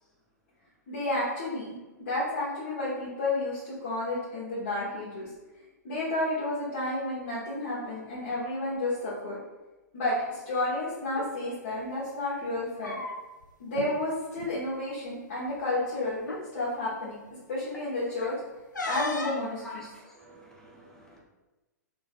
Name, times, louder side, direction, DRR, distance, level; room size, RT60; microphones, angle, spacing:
voice 1, 0.9-5.3 5.8-9.4 9.9-13.0 13.6-17.2 17.5-18.3 18.9-19.9, left 2 dB, 50° left, -10 dB, 1.3 m, -31 dB
sound 1, 11.0-11.3 12.5-13.4 13.7-13.9 14.3-14.5 15.5-15.6 16.2-16.5 18.7-19.5, left 3 dB, 80° left, 0.5 m, -35 dB
voice 2, 19.6-21.2, left 1 dB, 5° left, -2 dB, 0.6 m, -47 dB
4.0 x 3.1 x 2.3 m, 1.1 s
figure-of-eight pair, 110°, 10 cm